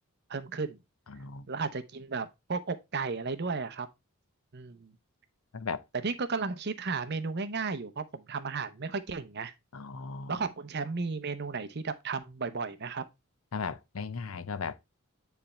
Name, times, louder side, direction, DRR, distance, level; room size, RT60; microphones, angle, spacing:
voice 1, 0.3-0.8 1.5-3.9 4.5-4.9 6.0-9.5 10.3-13.0, right 4 dB, 50° right, 0.7 m, -34 dB
voice 2, 1.1-1.5 5.5-5.8 9.7-10.4 13.5-14.7, left 5 dB, 70° left, 0.6 m, -36 dB
9.4 x 3.4 x 4.2 m
head